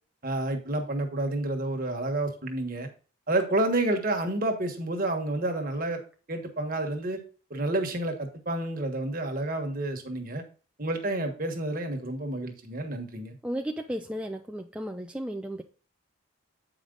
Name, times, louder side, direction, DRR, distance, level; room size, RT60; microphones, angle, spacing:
voice 1, 0.2-2.9 3.3-6.0 6.3-7.2 7.5-10.4 10.8-13.3, right 2 dB, 40° right, 4 dB, 1.3 m, -29 dB
voice 2, 13.4-15.6, equal, 5° right, 3 dB, 0.4 m, -34 dB
8.7 x 5.0 x 3.8 m, 0.39 s
head